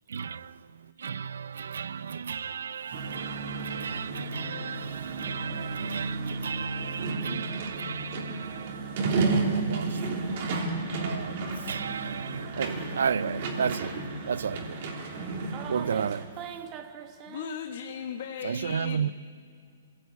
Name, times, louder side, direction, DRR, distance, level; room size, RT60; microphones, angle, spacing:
voice 1, 0.1-0.5 1.0-8.8 9.1-9.9 11.0-11.4 11.7-13.9 14.3-14.8 15.7-16.2 18.4-19.1, right 7 dB, 80° right, 0.6 m, -33 dB
sound 1, 2.9-16.2, right 3 dB, 40° right, 3.1 m, -32 dB
voice 2, 15.5-17.6, right 8 dB, 20° right, 1.3 m, -41 dB
voice 3, 17.3-19.1, left 8 dB, 50° left, 1.2 m, -37 dB
25.5 x 17.0 x 8.4 m
hypercardioid pair, 170°, 0 cm